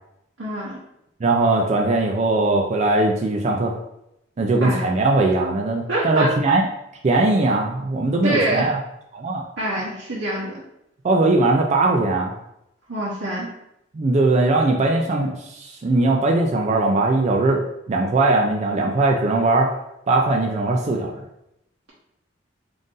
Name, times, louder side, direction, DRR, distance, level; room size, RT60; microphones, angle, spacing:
voice 1, 0.4-0.8 4.6-4.8 5.9-6.3 8.2-8.7 9.6-10.5 12.9-13.5, right 1 dB, 70° right, -7 dB, 0.9 m, -25 dB
voice 2, 1.2-3.8 4.4-6.6 7.0-8.8 9.1-9.4 11.0-12.3 13.9-17.6 17.9-19.8 20.1-21.2, right 2 dB, 35° right, 0 dB, 0.4 m, -20 dB
3.9 x 2.5 x 3.7 m, 0.82 s
head